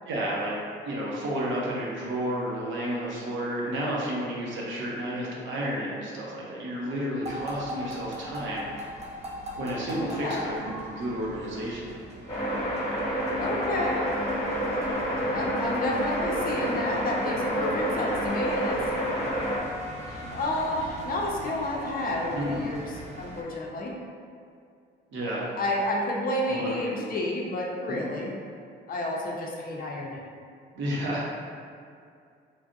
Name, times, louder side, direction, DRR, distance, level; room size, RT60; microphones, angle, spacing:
voice 1, 0.1-0.6 0.8-8.7 9.6-11.8 22.3-22.7 25.1-25.5 26.5-27.1 28.0-28.1 30.7-31.4, equal, 70° right, -5 dB, 0.8 m, -31 dB
sound 1, 7.2-23.4, equal, 35° right, 0.5 m, -41 dB
voice 2, 9.9-10.6 13.4-14.1 15.3-18.8 20.1-22.9 23.2-23.9 25.6-28.3 28.9-30.3, left 1 dB, 45° left, -1 dB, 0.5 m, -30 dB
sound 2, 12.3-19.6, equal, 30° left, 0.9 m, -28 dB
3.2 x 2.4 x 2.6 m, 2.3 s
cardioid pair, 90°, 20 cm